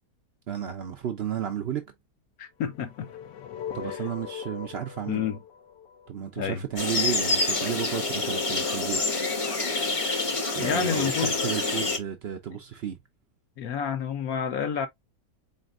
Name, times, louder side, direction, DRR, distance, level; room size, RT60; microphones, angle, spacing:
voice 1, 0.5-1.8 3.7-5.3 6.1-9.0 10.5-13.0, right 8 dB, 75° right, 0.5 m, -32 dB
voice 2, 2.4-3.1 3.9-4.0 5.1-5.4 6.4-6.6 10.6-11.3 13.6-14.9, left 8 dB, 65° left, 1.0 m, -29 dB
sound 1, 2.7-6.8, left 8 dB, 90° left, 1.3 m, -40 dB
sound 2, 6.8-12.0, left 3 dB, 30° left, 0.6 m, -27 dB
4.3 x 3.9 x 2.4 m
omnidirectional pair, 1.9 m